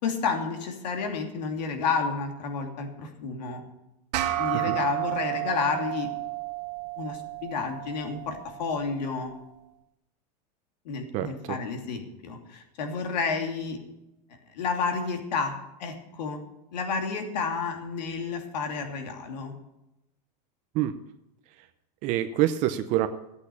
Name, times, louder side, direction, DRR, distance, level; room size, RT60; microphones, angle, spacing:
voice 1, 0.0-3.6 4.4-6.1 7.0-9.3 10.8-13.8 14.5-15.5 15.8-16.4 16.7-19.5, left 5 dB, 90° left, 4 dB, 2.9 m, -30 dB
sound 1, 4.1-8.9, right 16 dB, 75° right, 1.5 m, -32 dB
voice 2, 11.1-11.6 20.7-20.9 22.0-23.1, right 13 dB, 35° right, 9 dB, 0.7 m, -26 dB
14.5 x 8.5 x 6.9 m, 0.92 s
supercardioid pair, 165°, 21 cm